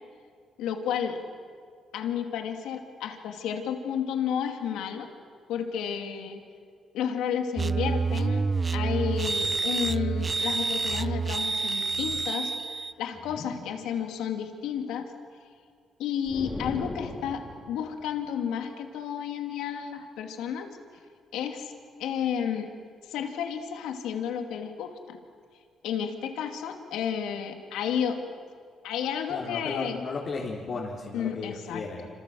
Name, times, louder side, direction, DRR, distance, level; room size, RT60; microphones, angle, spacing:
voice 1, 0.6-1.2 1.9-5.1 5.5-6.4 6.9-8.4 8.7-15.1 16.0-20.7 21.3-21.7 22.0-22.7 23.1-25.2 25.8-28.2 28.8-30.0 31.1-31.8, left 8 dB, 90° left, 5 dB, 2.6 m, -32 dB
sound 1, 7.6-12.9, right 4 dB, 30° right, 0.7 m, -28 dB
sound 2, 16.2-17.9, left 2 dB, 25° left, 4.0 m, -37 dB
voice 2, 29.3-32.1, left 4 dB, 50° left, -3 dB, 3.8 m, -35 dB
27.0 x 26.5 x 7.8 m, 2.1 s
cardioid pair, 90°, 0 cm